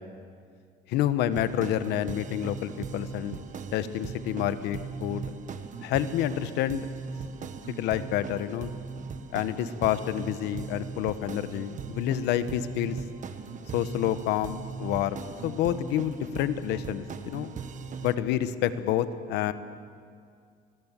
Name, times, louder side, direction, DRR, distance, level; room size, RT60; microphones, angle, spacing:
voice 1, 0.9-3.4 3.7-5.3 5.8-6.9 7.7-8.8 9.3-13.0 13.7-17.5 18.0-19.5, left 11 dB, 90° left, 12 dB, 1.1 m, -28 dB
sound 1, 1.3-18.1, right 5 dB, 50° right, 1.5 m, -39 dB
22.5 x 20.5 x 7.5 m, 2.2 s
cardioid pair, 110°, 17 cm